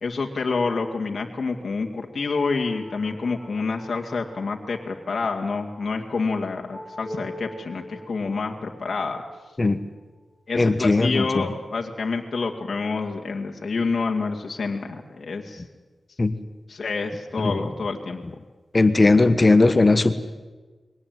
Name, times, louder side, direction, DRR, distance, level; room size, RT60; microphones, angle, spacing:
voice 1, 0.0-9.2 10.5-15.6 16.7-18.2, left 4 dB, 60° left, 1 dB, 2.2 m, -28 dB
sound 1, 2.4-11.3, equal, 15° right, 6.7 m, -44 dB
voice 2, 10.5-11.4 16.2-16.3 17.4-17.6 18.7-20.1, left 3 dB, 30° left, 12 dB, 1.3 m, -18 dB
22.5 x 18.5 x 9.5 m, 1.3 s
wide cardioid pair, 90°, 0 cm